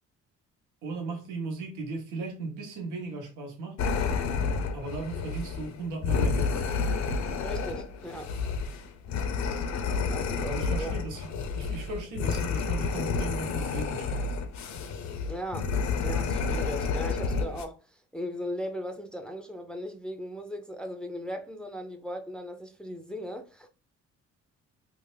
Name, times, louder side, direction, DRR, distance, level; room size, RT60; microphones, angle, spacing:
voice 1, 0.8-3.8 4.7-6.6 10.5-11.3 11.5-14.4, right 3 dB, 85° right, 0.9 m, -37 dB
sound 1, 3.8-17.6, left 5 dB, 65° left, 0.6 m, -30 dB
voice 2, 7.4-8.4 10.1-11.0 15.3-23.7, equal, 5° left, 0.5 m, -38 dB
3.4 x 2.1 x 3.2 m
cardioid pair, 90°, 30 cm